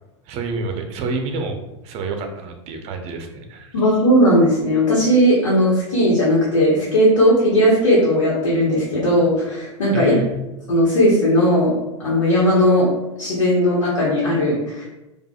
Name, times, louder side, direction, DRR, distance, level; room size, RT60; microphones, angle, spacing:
voice 1, 0.3-1.6 1.8-3.9 9.9-10.3, right 3 dB, 40° right, 5 dB, 0.7 m, -28 dB
voice 2, 3.7-10.1 10.7-11.7 12.0-12.9 13.2-14.9, equal, 75° left, -6 dB, 1.2 m, -17 dB
4.7 x 2.5 x 2.3 m, 1.0 s
hypercardioid pair, 90°, 16 cm